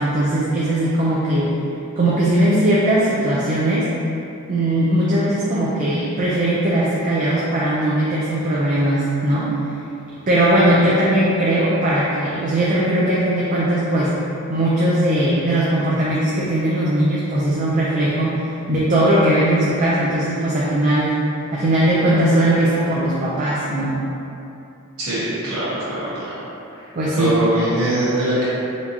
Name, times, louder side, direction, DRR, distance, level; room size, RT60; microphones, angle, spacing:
voice 1, 0.0-1.5 2.0-3.9 4.5-9.5 10.3-14.1 14.5-21.1 21.5-24.0 26.9-27.3, right 1 dB, 35° right, -7 dB, 0.4 m, -19 dB
voice 2, 25.0-26.3 26.7-26.9 27.2-28.5, right 1 dB, 70° right, -11 dB, 1.4 m, -22 dB
4.4 x 2.7 x 2.8 m, 2.7 s
head